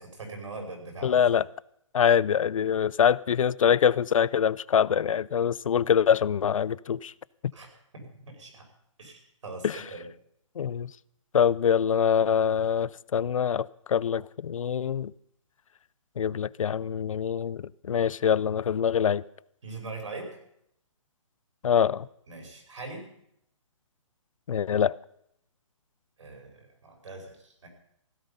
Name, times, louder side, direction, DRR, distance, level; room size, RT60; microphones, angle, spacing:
voice 1, 0.0-1.2 7.5-7.7 7.9-8.7 9.0-10.1 19.6-20.4 22.3-23.1 26.2-27.7, right 3 dB, 70° right, 5.6 m, -41 dB
voice 2, 1.0-1.5 1.9-7.1 9.6-9.8 10.6-10.9 11.3-15.1 16.2-19.2 21.6-22.1 24.5-25.0, left 8 dB, 80° left, 0.5 m, -24 dB
16.0 x 11.5 x 5.6 m
hypercardioid pair, 165°, 17 cm